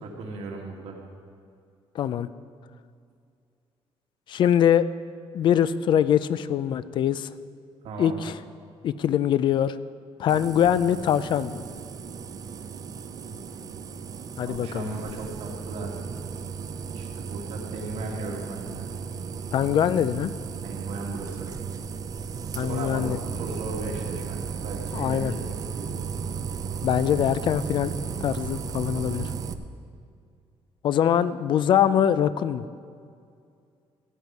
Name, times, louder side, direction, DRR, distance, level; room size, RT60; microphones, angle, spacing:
voice 1, 0.0-1.0 7.8-8.2 13.2-13.7 14.5-15.9 16.9-18.9 20.6-21.5 22.6-25.3 25.8-26.0, right 3 dB, 90° right, 0 dB, 2.0 m, -36 dB
voice 2, 1.9-2.3 4.3-4.9 5.3-7.3 8.0-8.4 8.8-9.8 10.2-11.6 14.4-14.9 19.5-20.3 22.6-23.2 24.9-25.3 26.8-27.9 28.2-29.3 30.8-32.7, left 9 dB, 50° left, 15 dB, 0.4 m, -23 dB
sound 1, 10.3-29.5, right 6 dB, 35° right, 0.5 m, -35 dB
15.5 x 9.2 x 4.7 m, 2.3 s
cardioid pair, 175°, 11 cm